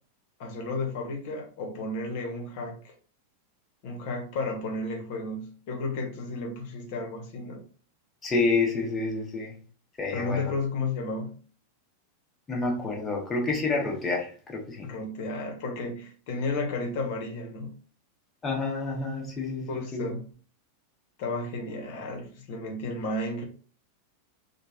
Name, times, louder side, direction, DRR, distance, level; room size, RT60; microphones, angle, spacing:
voice 1, 0.4-2.9 3.8-7.6 10.1-11.3 14.8-17.7 19.7-20.3 21.2-23.4, left 2 dB, 50° left, 0.9 m, -33 dB
voice 2, 8.2-9.6 10.0-10.5 12.5-14.9 18.4-20.1, left 3 dB, 20° left, 0.8 m, -28 dB
3.0 x 2.3 x 2.4 m
figure-of-eight pair, 90°, 0 cm